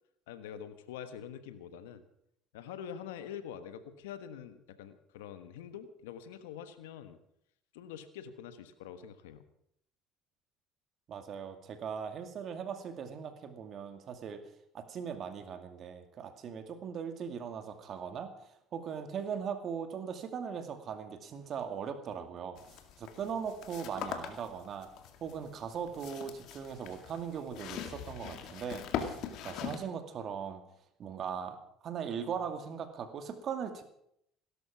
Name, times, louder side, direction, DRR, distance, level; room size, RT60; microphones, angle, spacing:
voice 1, 0.3-2.0 2.5-7.2 7.7-9.4, left 9 dB, 90° left, 11 dB, 1.3 m, -45 dB
voice 2, 11.1-14.4 14.7-18.3 18.7-22.6 23.0-24.9 25.2-29.2 29.4-30.6 31.0-31.6 31.8-33.8, right 7 dB, 50° right, 8 dB, 2.3 m, -39 dB
sound 1, 22.6-29.8, left 8 dB, 65° left, 2.2 m, -42 dB
17.0 x 12.5 x 6.1 m, 0.74 s
supercardioid pair, 80°, 0 cm